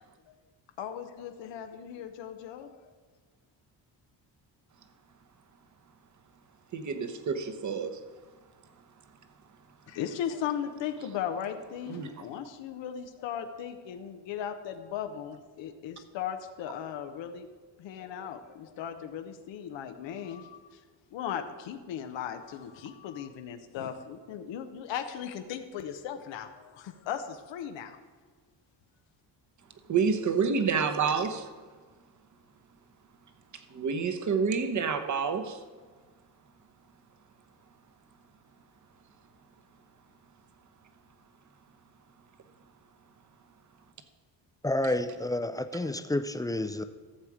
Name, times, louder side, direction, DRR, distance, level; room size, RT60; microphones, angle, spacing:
voice 1, 0.8-2.8 9.9-17.5 17.8-20.8 21.1-28.0, left 9 dB, 90° left, 6 dB, 0.9 m, -37 dB
voice 2, 6.7-8.0 11.9-12.1 29.9-31.4 33.7-35.6, right 5 dB, 40° right, 9 dB, 1.0 m, -28 dB
voice 3, 44.6-46.8, left 1 dB, 10° left, 10 dB, 0.4 m, -30 dB
14.0 x 7.2 x 4.9 m, 1.4 s
cardioid pair, 125°, 43 cm